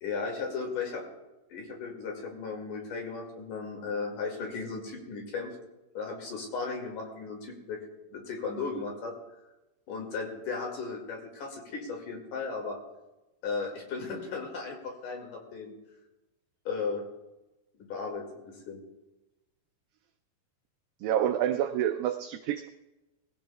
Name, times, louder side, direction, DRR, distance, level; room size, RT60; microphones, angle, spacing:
voice 1, 0.0-1.0 1.5-5.6 6.0-7.9 8.1-9.1 9.9-12.8 13.4-15.7 16.7-17.0 17.8-18.8, left 4 dB, 55° left, 1 dB, 3.4 m, -36 dB
voice 2, 21.0-22.7, right 10 dB, 85° right, 8 dB, 2.0 m, -28 dB
20.5 x 15.5 x 2.3 m, 1.0 s
omnidirectional pair, 4.6 m